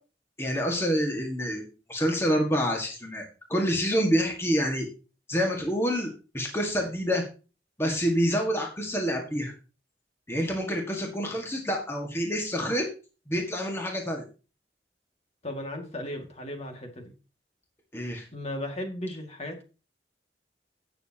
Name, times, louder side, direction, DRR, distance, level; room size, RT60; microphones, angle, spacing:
voice 1, 0.4-4.9 5.3-6.1 6.3-7.2 7.8-9.5 10.3-12.8 13.3-14.2 17.9-18.2, equal, 15° left, 1 dB, 1.8 m, -27 dB
voice 2, 15.4-17.0 18.3-19.6, left 1 dB, 40° left, 3 dB, 2.2 m, -35 dB
17.0 x 6.9 x 2.9 m, 0.33 s
head